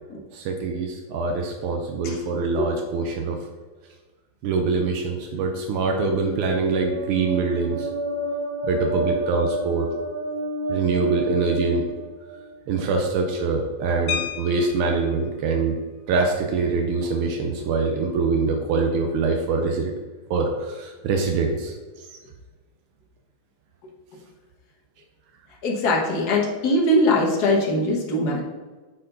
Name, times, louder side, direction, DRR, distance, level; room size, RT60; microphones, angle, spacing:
voice 1, 0.3-3.4 4.4-7.9 8.6-9.9 10.7-11.9 12.7-15.8 16.1-19.9 20.3-22.1, right 4 dB, 85° right, 3 dB, 1.7 m, -24 dB
sound 1, 6.0-12.6, right 1 dB, 70° right, 1.4 m, -30 dB
sound 2, 14.1-15.2 16.6-16.7 17.1-17.3 17.6-17.9, left 11 dB, 75° left, 1.2 m, -32 dB
voice 2, 25.6-28.4, left 1 dB, 50° left, -2 dB, 1.7 m, -21 dB
8.2 x 4.4 x 3.9 m, 1.3 s
omnidirectional pair, 2.3 m